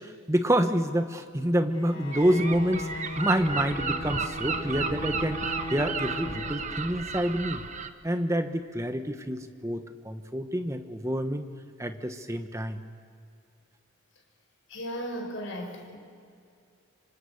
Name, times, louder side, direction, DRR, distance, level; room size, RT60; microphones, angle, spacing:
voice 1, 0.0-5.4 5.7-7.6 8.0-11.4 11.8-12.8, equal, 15° right, 7 dB, 1.1 m, -28 dB
Bowed string instrument, 1.7-7.1, left 2 dB, 25° left, 5.0 m, -38 dB
Gull seagull, 2.1-7.9, right 5 dB, 35° right, 1.0 m, -33 dB
voice 2, 14.7-16.0, equal, 65° left, 1 dB, 5.4 m, -36 dB
26.0 x 25.5 x 6.6 m, 2.4 s
head